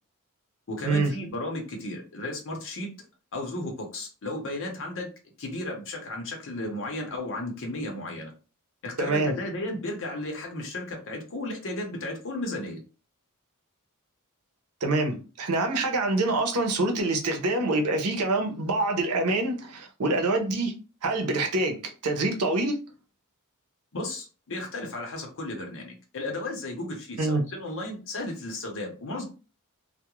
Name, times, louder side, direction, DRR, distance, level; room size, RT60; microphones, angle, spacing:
voice 1, 0.7-2.9 3.3-5.1 5.4-8.3 8.8-12.8 23.9-29.2, left 1 dB, 60° left, 0.7 m, -34 dB
voice 2, 9.0-9.4 14.8-20.7 21.0-22.8 27.2-27.4, right 2 dB, 90° right, 0.7 m, -26 dB
2.3 x 2.1 x 2.9 m
head